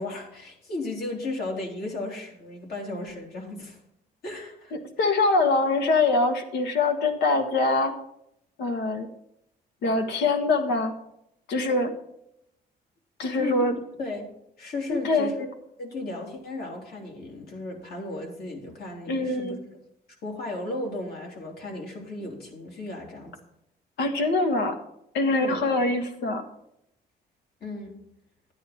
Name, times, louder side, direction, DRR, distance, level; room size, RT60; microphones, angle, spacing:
voice 1, 0.0-3.8 4.2-4.7 13.3-14.3 14.6-15.5 15.8-19.6 20.2-23.4 25.3-25.6 27.6-28.0, left 2 dB, 65° left, 0 dB, 3.4 m, -35 dB
voice 2, 4.7-7.9 8.6-9.1 9.8-10.9 11.5-11.9 13.2-13.7 14.9-15.4 19.1-19.6 24.0-24.8 25.1-26.4, left 3 dB, 85° left, 6 dB, 1.6 m, -24 dB
12.0 x 9.6 x 4.3 m, 0.77 s
cardioid pair, 110°, 17 cm